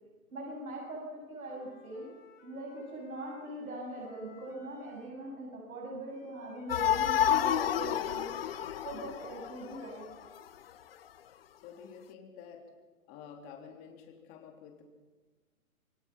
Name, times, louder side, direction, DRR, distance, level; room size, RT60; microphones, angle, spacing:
voice 1, 0.3-2.1 2.4-8.3 8.8-10.0, right 2 dB, 80° right, -2 dB, 7.3 m, -42 dB
Wind instrument woodwind instrument, 1.4-5.2 6.1-9.7, left 6 dB, 60° left, 5.4 m, -57 dB
sound 1, 6.7-10.1, left 10 dB, 45° left, 0.8 m, -30 dB
voice 2, 11.6-12.7 13.1-14.8, left 7 dB, 20° left, 3 dB, 3.2 m, -50 dB
27.0 x 22.0 x 5.9 m, 1.3 s
hypercardioid pair, 160°, 42 cm